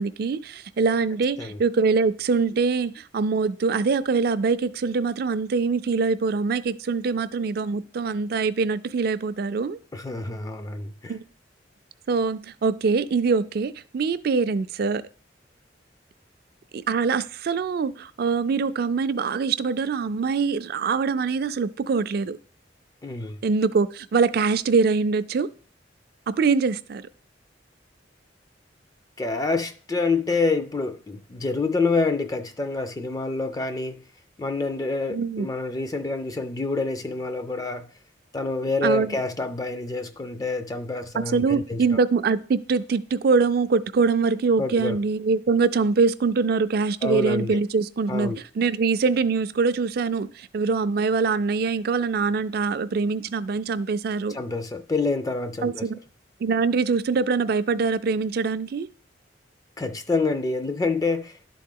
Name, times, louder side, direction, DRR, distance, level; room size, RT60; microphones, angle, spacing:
voice 1, 0.0-9.8 11.1-11.2 12.1-15.0 16.7-22.4 23.4-25.5 26.3-27.0 35.1-35.5 38.8-39.2 41.2-54.4 55.6-56.0 56.4-58.9, right 4 dB, 55° right, 0.4 m, -23 dB
voice 2, 9.9-11.1 23.0-23.4 29.2-34.0 34.4-37.9 38.3-41.8 44.6-45.0 47.0-47.6 48.1-48.4 54.3-55.9 59.8-61.5, left 3 dB, 20° left, 0.3 m, -27 dB
11.0 x 3.8 x 3.7 m
head